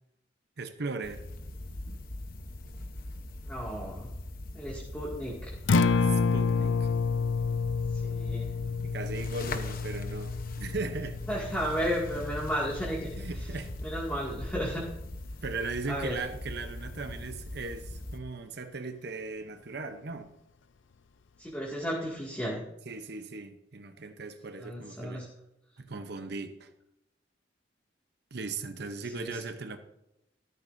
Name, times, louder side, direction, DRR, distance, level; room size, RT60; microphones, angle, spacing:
voice 1, 0.6-1.2 6.0-6.9 8.8-11.2 13.2-13.7 15.4-20.3 22.9-25.3 25.8-26.7 28.3-29.8, right 3 dB, 60° right, 0.8 m, -38 dB
sound 1, 1.0-18.2, left 1 dB, 50° left, 1.0 m, -41 dB
voice 2, 3.5-4.1 4.5-5.5 6.6-6.7 8.0-8.5 11.3-13.1 13.8-14.8 15.9-16.1 21.4-22.6 24.6-25.3 29.1-29.4, equal, 10° left, 2.2 m, -33 dB
Acoustic guitar, 5.5-13.7, left 4 dB, 85° left, 0.6 m, -30 dB
13.5 x 13.5 x 2.7 m
head